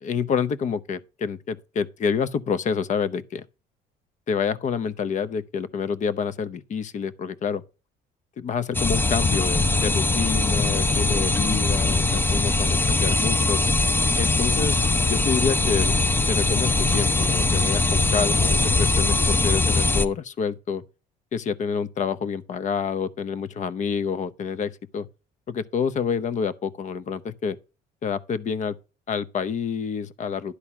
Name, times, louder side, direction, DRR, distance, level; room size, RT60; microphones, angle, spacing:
voice 1, 0.0-3.5 4.3-7.6 8.4-13.6 14.2-14.8 15.1-16.0 16.3-20.8 21.3-25.1 25.5-27.6 28.0-28.8 29.1-30.6, left 6 dB, 45° left, 0.8 m, -28 dB
sound 1, 8.7-20.1, left 3 dB, 10° left, 0.6 m, -21 dB
11.5 x 4.0 x 5.8 m
cardioid pair, 110°, 17 cm